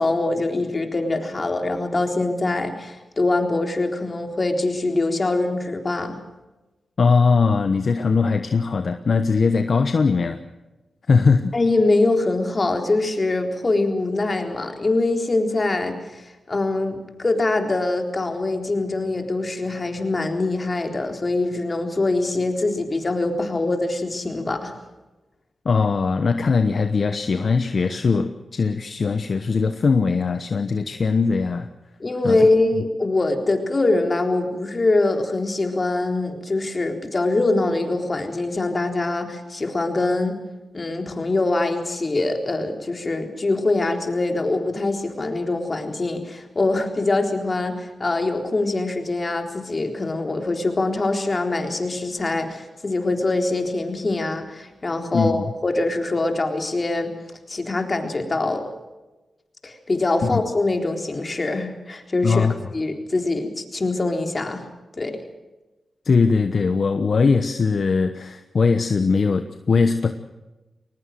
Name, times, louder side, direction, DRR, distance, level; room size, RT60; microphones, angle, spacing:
voice 1, 0.0-6.2 11.5-16.0 16.5-24.8 32.0-40.4 40.7-57.1 57.5-58.7 59.6-62.5 62.7-64.6 65.0-65.2, left 2 dB, 40° left, 4 dB, 3.9 m, -23 dB
voice 2, 7.0-10.4 11.1-11.5 25.6-31.7 32.2-32.4 55.1-55.5 60.2-60.4 62.2-62.5 66.0-70.1, left 4 dB, 60° left, 9 dB, 1.1 m, -20 dB
21.5 x 19.5 x 7.6 m, 1.1 s
cardioid pair, 50°, 0 cm